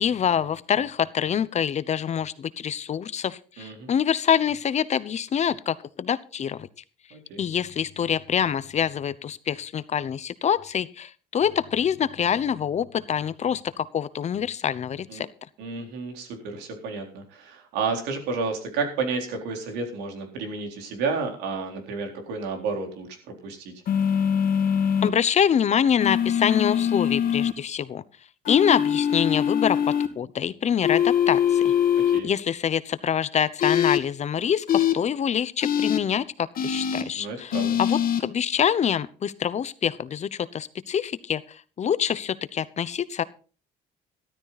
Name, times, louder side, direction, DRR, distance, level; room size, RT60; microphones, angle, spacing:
voice 1, 0.0-6.7 7.4-15.3 25.0-28.0 28.5-31.7 32.2-43.2, left 8 dB, 40° left, 16 dB, 0.9 m, -25 dB
voice 2, 3.6-3.9 7.1-7.4 15.1-15.2 15.6-23.7 32.1-32.3 37.1-37.8, right 4 dB, 90° right, 4 dB, 3.9 m, -31 dB
sound 1, 23.9-25.1 26.0-27.5 28.5-30.1 30.8-32.2 33.6-34.0 34.7-34.9 35.6-36.0 36.6-37.0 37.5-38.2, left 9 dB, 60° left, 2.1 m, -22 dB
13.5 x 13.0 x 4.1 m, 0.37 s
cardioid pair, 110°, 17 cm